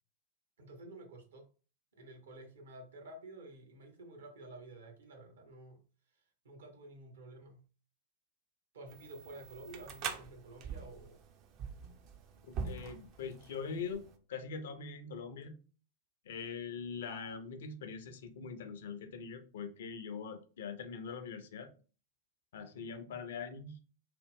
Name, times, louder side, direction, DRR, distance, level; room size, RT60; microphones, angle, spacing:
voice 1, 0.6-1.5 2.0-5.8 6.1-7.6 8.7-11.2, right 2 dB, 65° right, 0.8 m, -51 dB
sound 1, 8.9-14.2, right 6 dB, 40° right, 0.4 m, -44 dB
voice 2, 12.4-15.6 16.3-21.7 22.5-23.8, left 5 dB, 60° left, 0.5 m, -43 dB
2.8 x 2.0 x 3.5 m
figure-of-eight pair, 90°, 0 cm